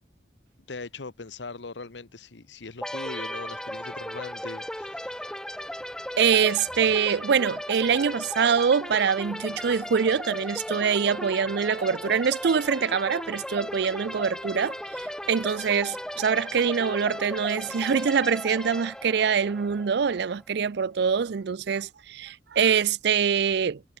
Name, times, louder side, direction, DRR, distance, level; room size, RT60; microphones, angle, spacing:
voice 1, 0.7-5.3, left 3 dB, 85° left, 1.1 m, -40 dB
sound 1, 2.8-20.4, equal, 5° left, 1.8 m, -36 dB
voice 2, 6.2-23.8, right 6 dB, 70° right, 0.5 m, -24 dB
head